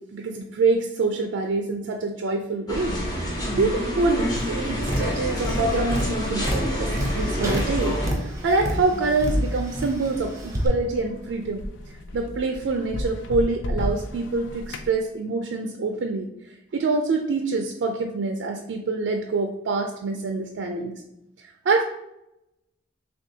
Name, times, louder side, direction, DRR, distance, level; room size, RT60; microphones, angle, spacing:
voice 1, 0.1-11.6 12.1-16.3 16.7-20.9 21.7-21.8, right 3 dB, 70° right, 4 dB, 0.3 m, -26 dB
sound 1, 2.7-8.1, equal, 20° left, 0.9 m, -27 dB
Tap, 4.3-10.7, equal, 15° right, 0.7 m, -31 dB
sound 2, 8.3-14.9, left 1 dB, 75° left, 0.4 m, -32 dB
6.0 x 2.3 x 2.7 m, 0.89 s
head